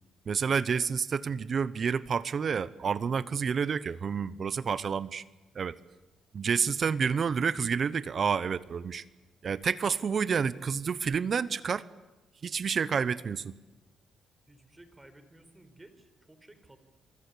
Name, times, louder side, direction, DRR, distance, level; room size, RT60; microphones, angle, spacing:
voice 1, 0.3-5.2 5.5-5.8 6.3-9.0 9.4-11.9 12.4-13.5, right 6 dB, 50° right, 18 dB, 0.9 m, -29 dB
voice 2, 14.5-16.8, right 1 dB, 15° right, 10 dB, 4.4 m, -55 dB
28.5 x 24.0 x 8.6 m, 1.1 s
cardioid pair, 90°, 0 cm